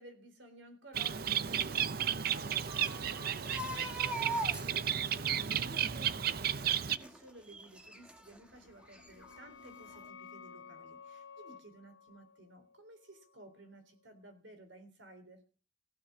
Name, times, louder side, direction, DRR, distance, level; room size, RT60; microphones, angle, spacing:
voice 1, 0.0-15.4, right 1 dB, 85° right, 7 dB, 3.8 m, -56 dB
Bird, 0.9-7.0, right 9 dB, 55° right, 0.6 m, -33 dB
sound 1, 1.5-8.4 8.8-9.7 9.9-10.1, right 2 dB, 5° right, 1.4 m, -43 dB
sound 2, 8.6-14.0, left 6 dB, 90° left, 0.9 m, -54 dB
16.0 x 6.6 x 7.4 m, 0.36 s
head